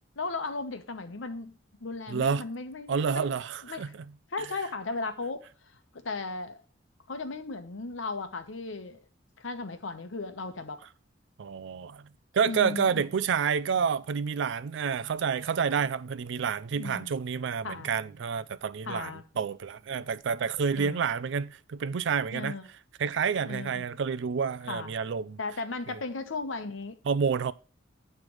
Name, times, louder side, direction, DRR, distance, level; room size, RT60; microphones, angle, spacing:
voice 1, 0.2-1.5 1.8-3.3 3.6-3.9 4.3-5.5 6.0-6.6 7.1-9.0 9.4-10.8 12.4-13.0 16.7-17.1 17.6-17.9 18.9-19.2 20.7-21.1 22.3-22.7 23.4-23.8 24.7-24.9 25.4-27.0, left 3 dB, 85° left, 0.9 m, -36 dB
voice 2, 2.1-2.4 2.9-4.1 11.4-12.1 12.3-22.6 23.0-25.4 27.1-27.5, right 6 dB, 70° right, 0.4 m, -29 dB
8.8 x 3.3 x 6.1 m
head